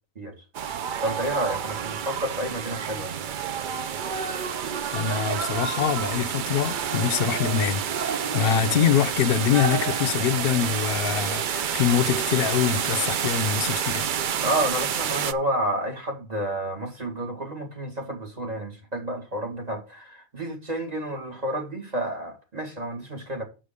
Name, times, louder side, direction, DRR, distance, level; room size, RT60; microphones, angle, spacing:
sound 1, 0.5-15.3, right 8 dB, 55° right, 0.6 m, -28 dB
voice 1, 1.0-3.1 14.4-23.4, right 1 dB, 40° right, 2.1 m, -30 dB
voice 2, 4.9-14.1, left 9 dB, 65° left, 0.8 m, -24 dB
7.5 x 5.1 x 6.6 m
omnidirectional pair, 1.1 m